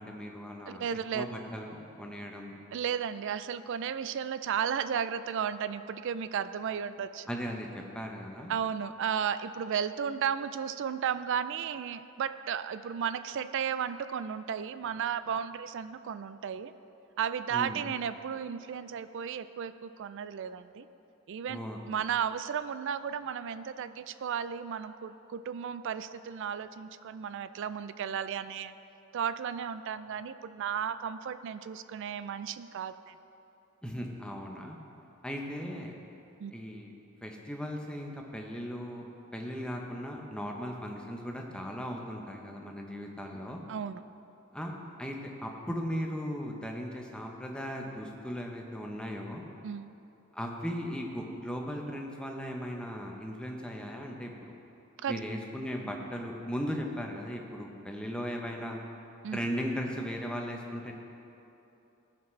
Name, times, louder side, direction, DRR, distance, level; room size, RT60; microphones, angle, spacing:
voice 1, 0.0-0.8 1.1-2.6 7.3-8.5 17.5-17.8 21.5-21.8 33.8-34.8 35.2-36.0 36.5-36.9 37.2-39.0 39.3-43.6 44.5-44.7 45.0-49.4 50.3-54.5 55.1-58.8 59.3-60.9, equal, 5° left, 1 dB, 0.7 m, -37 dB
voice 2, 0.7-1.3 2.7-7.3 8.5-16.7 17.2-20.9 21.3-21.6 21.9-28.7 29.1-33.1 36.4-36.5 43.7-44.0 49.6-49.9 55.0-55.2 59.2-59.4, right 8 dB, 55° right, 13 dB, 0.3 m, -34 dB
17.0 x 5.9 x 3.2 m, 2.9 s
head